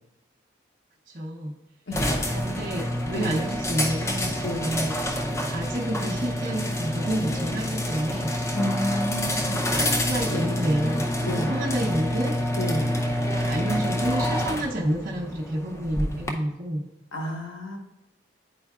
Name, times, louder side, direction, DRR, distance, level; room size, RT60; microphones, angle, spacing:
voice 1, 1.1-1.5 2.3-5.0 5.5-8.3 9.7-12.4 13.2-16.8, right 1 dB, 45° right, -3 dB, 0.7 m, -29 dB
voice 2, 1.9-2.3 3.1-3.4 4.4-4.6 8.5-9.6 10.3-10.4 11.2-11.5 12.6-12.8 17.1-17.8, left 1 dB, 90° left, 0 dB, 1.3 m, -30 dB
sound 1, 1.9-16.3, left 1 dB, 15° left, 0.5 m, -27 dB
9.9 x 4.5 x 2.4 m, 0.90 s
head